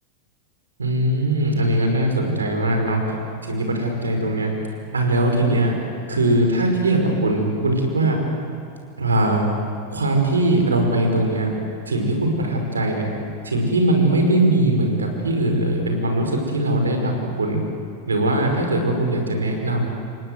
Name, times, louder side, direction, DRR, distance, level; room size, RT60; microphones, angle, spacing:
voice 1, 0.8-3.0 3.4-4.5 4.9-5.7 6.1-8.2 9.0-9.5 9.9-11.5 11.9-13.1 13.4-17.6 18.1-19.9, right 1 dB, 75° right, 3 dB, 5.3 m, -20 dB
28.5 x 24.5 x 8.1 m, 2.5 s
figure-of-eight pair, 90°, 0 cm